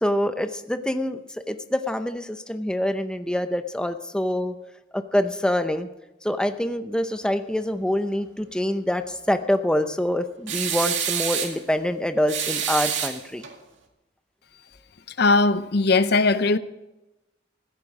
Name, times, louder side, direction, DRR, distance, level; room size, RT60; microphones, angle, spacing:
voice 1, 0.0-4.5 4.9-5.9 6.2-13.4, left 1 dB, 5° left, 0.7 m, -25 dB
sound 1, 10.5-11.6 12.3-13.5, right 8 dB, 90° right, 2.1 m, -27 dB
voice 2, 15.2-16.6, left 3 dB, 60° left, 0.7 m, -19 dB
15.0 x 13.5 x 4.9 m
head